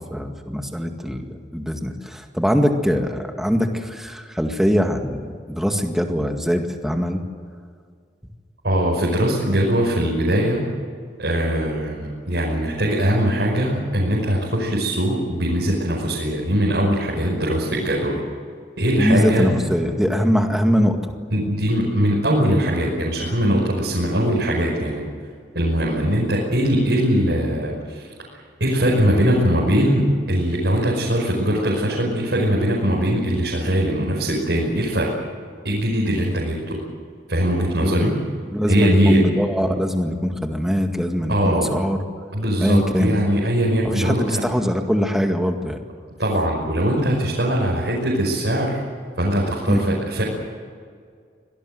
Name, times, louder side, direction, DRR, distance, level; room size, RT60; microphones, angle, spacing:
voice 1, 0.0-7.2 19.0-21.0 37.8-38.0 38.5-42.0 42.6-43.2 43.8-45.8 49.7-49.9, equal, ahead, 4 dB, 1.9 m, -22 dB
voice 2, 8.6-10.6 11.2-18.2 18.8-19.5 21.3-25.1 25.5-28.1 28.6-35.2 35.6-36.8 37.3-38.2 38.7-39.2 41.3-41.8 42.3-44.4 46.2-48.8 49.2-50.2, equal, 75° right, -4 dB, 5.7 m, -21 dB
25.5 x 18.5 x 7.9 m, 2.1 s
head